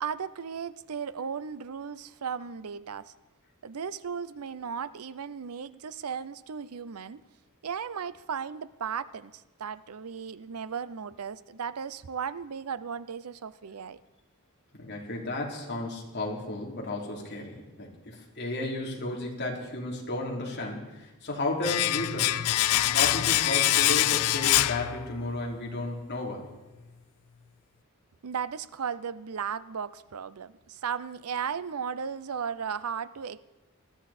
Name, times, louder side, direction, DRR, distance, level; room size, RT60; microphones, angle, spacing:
voice 1, 0.0-3.1 3.6-7.2 7.6-14.0 28.2-33.4, right 7 dB, 85° right, 16 dB, 0.6 m, -36 dB
voice 2, 14.7-22.4 22.9-26.5, left 2 dB, 50° left, -2 dB, 3.4 m, -33 dB
Domestic sounds home sounds, 21.6-25.5 25.7-25.9, left 14 dB, 85° left, 0.4 m, -25 dB
20.5 x 13.5 x 4.3 m, 1.1 s
head